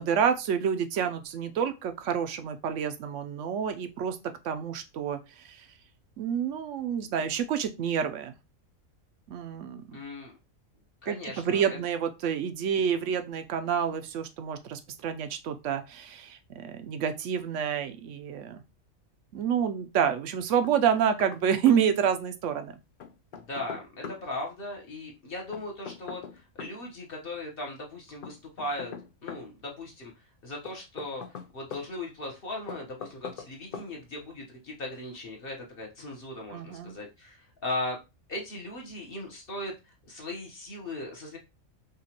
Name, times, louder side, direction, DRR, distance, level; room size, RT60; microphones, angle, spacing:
voice 1, 0.0-4.2 4.4-5.7 6.2-8.3 9.3-9.9 11.1-18.6 19.3-22.7 36.5-37.0, right 8 dB, 70° right, 8 dB, 0.9 m, -28 dB
voice 2, 9.9-10.3 11.0-11.8 23.3-28.9 29.2-30.1 30.4-31.2 31.5-38.0 38.3-39.7 40.1-41.4, left 2 dB, 45° left, 0 dB, 1.1 m, -38 dB
Knock, 20.6-21.4 21.7-21.8 23.0-24.2 25.5-26.8 28.2-29.5 30.7-31.9 32.7-33.5 33.7-33.9, left 6 dB, 65° left, 0.5 m, -41 dB
5.0 x 2.3 x 2.8 m, 0.26 s
omnidirectional pair, 1.4 m